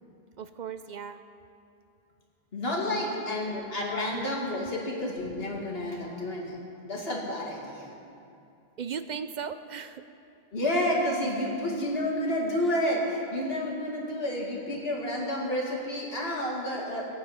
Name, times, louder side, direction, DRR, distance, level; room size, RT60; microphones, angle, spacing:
voice 1, 0.4-1.2 3.0-3.6 8.8-10.0, right 7 dB, 55° right, 10 dB, 0.6 m, -37 dB
voice 2, 2.5-6.6 6.9-7.9 10.5-17.1, left 1 dB, 70° left, -3 dB, 2.5 m, -30 dB
18.5 x 8.5 x 5.7 m, 2.6 s
omnidirectional pair, 1.1 m